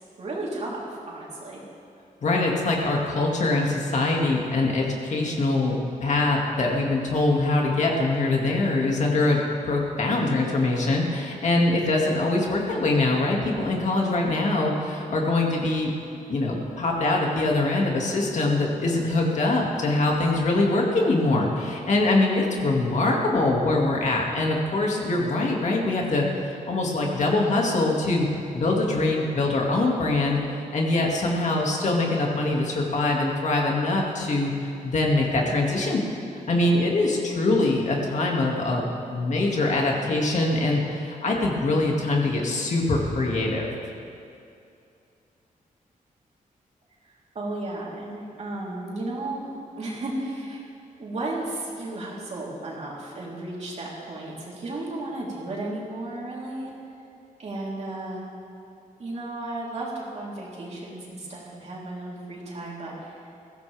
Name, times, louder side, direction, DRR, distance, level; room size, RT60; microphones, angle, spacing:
voice 1, 0.2-1.6 47.0-50.6 51.0-56.7 57.4-58.2 59.0-63.2, right 2 dB, 50° right, -5 dB, 3.6 m, -34 dB
voice 2, 2.2-28.3 28.5-36.0 36.5-43.7, left 2 dB, 55° left, -1 dB, 2.2 m, -23 dB
21.5 x 16.0 x 3.5 m, 2.6 s
wide cardioid pair, 160°, 15 cm